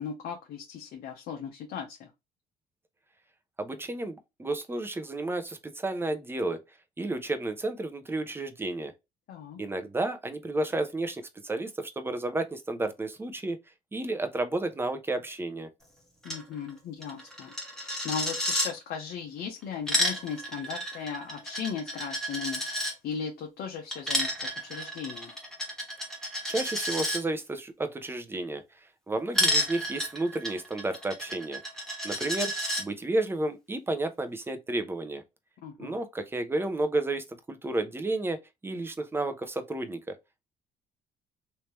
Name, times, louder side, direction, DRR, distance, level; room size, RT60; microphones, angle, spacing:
voice 1, 0.0-2.1 9.3-9.6 16.2-17.5 18.0-25.3 35.6-36.0, left 7 dB, 70° left, 1.0 m, -37 dB
voice 2, 3.6-6.6 7.0-8.9 9.6-13.6 13.9-15.7 26.5-28.6 29.1-31.6 32.0-32.5 32.8-35.2 35.8-40.1, right 2 dB, 15° right, 0.7 m, -32 dB
Coin (dropping), 16.2-16.4 16.7-16.8 17.0-18.7 19.6-22.9 23.9-27.2 29.3-32.8, equal, 5° left, 1.4 m, -31 dB
3.3 x 2.9 x 3.0 m
cardioid pair, 110°, 17 cm